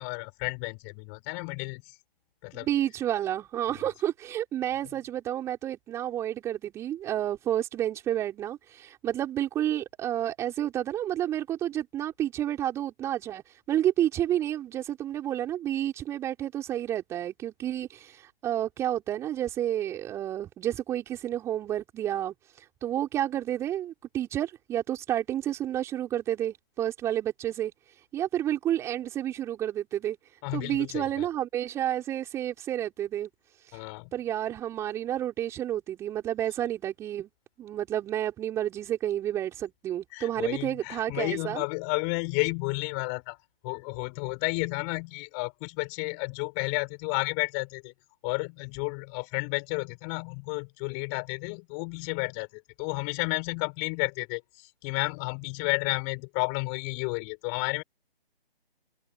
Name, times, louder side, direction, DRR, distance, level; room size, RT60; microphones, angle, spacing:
voice 1, 0.0-1.8 2.4-2.7 30.4-31.3 33.7-34.1 40.1-43.4 43.6-47.9 48.2-57.8, left 40 dB or more, 15° left, 6.9 m, -32 dB
voice 2, 2.5-27.7 28.1-30.2 30.5-33.3 33.6-33.8 34.1-37.3 37.6-41.6, right 11 dB, 10° right, 4.7 m, -30 dB
figure-of-eight pair, 150°, 30 cm